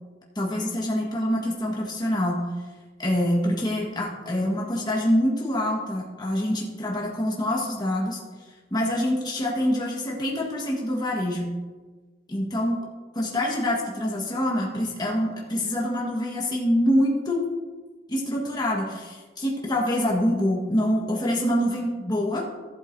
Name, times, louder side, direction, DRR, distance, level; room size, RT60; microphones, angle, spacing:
voice 1, 0.3-2.4 3.0-8.2 8.7-11.5 12.3-12.8 13.1-17.5 18.1-22.4, left 1 dB, 20° left, -3 dB, 1.5 m, -25 dB
15.5 x 7.8 x 2.7 m, 1.3 s
head